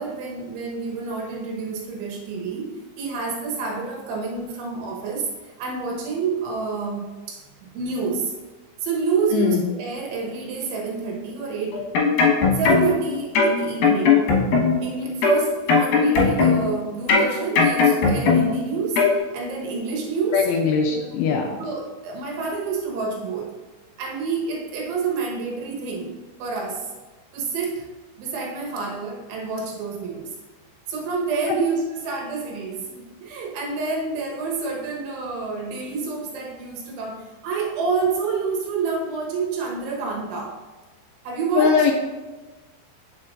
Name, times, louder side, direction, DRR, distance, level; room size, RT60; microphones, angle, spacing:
voice 1, 0.0-2.7 3.0-8.3 8.8-11.9 12.6-14.2 14.8-20.4 20.9-21.0 21.6-23.5 24.0-26.1 26.4-26.9 27.3-27.9 28.2-30.3 30.9-40.6 41.3-41.9, right 4 dB, 85° right, -1 dB, 3.7 m, -28 dB
voice 2, 9.3-9.6 20.3-21.6 41.6-41.9, left 6 dB, 85° left, 3 dB, 2.5 m, -20 dB
sound 1, 11.7-13.0 13.3-14.9 15.2-16.7 17.1-18.6 19.0-19.1, left 4 dB, 65° left, 2.5 m, -18 dB
9.0 x 6.8 x 2.5 m, 1.2 s
omnidirectional pair, 5.3 m